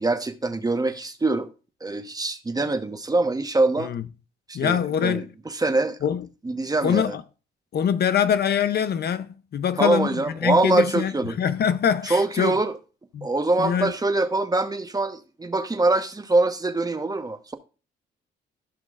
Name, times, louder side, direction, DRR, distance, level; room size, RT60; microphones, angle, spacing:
voice 1, 0.0-1.5 1.8-3.9 4.5-5.3 5.5-6.0 6.4-7.1 9.8-11.3 12.1-12.8 13.2-17.6, right 2 dB, 20° right, 1.1 m, -24 dB
voice 2, 4.5-5.3 6.0-6.3 6.8-7.2 7.7-12.6 13.1-13.3 13.6-13.9, left 8 dB, 55° left, 0.7 m, -24 dB
15.0 x 6.1 x 2.4 m
cardioid pair, 90°, 20 cm